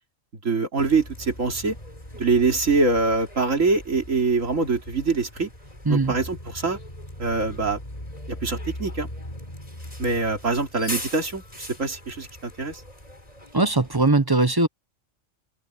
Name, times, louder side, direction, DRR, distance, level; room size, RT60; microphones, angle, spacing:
voice 1, 0.4-1.7 2.1-5.5 5.9-6.8 7.2-7.8 8.3-9.1 10.0-12.8, right 3 dB, 80° right, 3.3 m, -24 dB
Bus, 0.8-14.1, left 1 dB, 30° left, 5.4 m, -39 dB
voice 2, 13.5-14.7, right 2 dB, 20° right, 0.8 m, -20 dB
open air
omnidirectional pair, 1.3 m